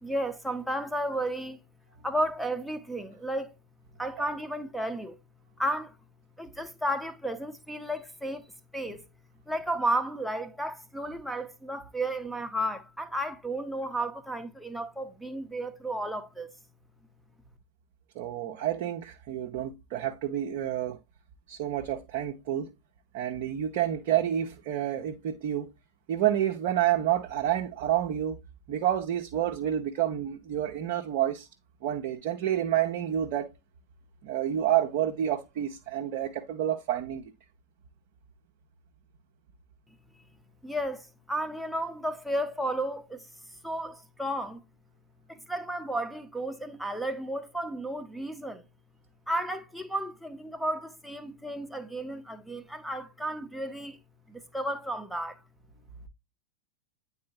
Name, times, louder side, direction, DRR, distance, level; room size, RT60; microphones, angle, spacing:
voice 1, 0.0-1.6 2.0-3.5 4.0-5.2 5.6-6.0 6.4-8.5 8.7-9.0 9.5-16.5 40.6-43.3 43.6-44.6 45.3-48.6 49.3-54.0 54.3-55.4, right 1 dB, ahead, 0.8 m, -33 dB
voice 2, 18.1-21.0 21.5-22.7 23.1-25.7 26.1-28.4 28.7-31.5 31.8-33.5 34.2-37.2, right 11 dB, 45° right, 0.7 m, -29 dB
9.4 x 4.0 x 2.8 m
figure-of-eight pair, 90°, 0 cm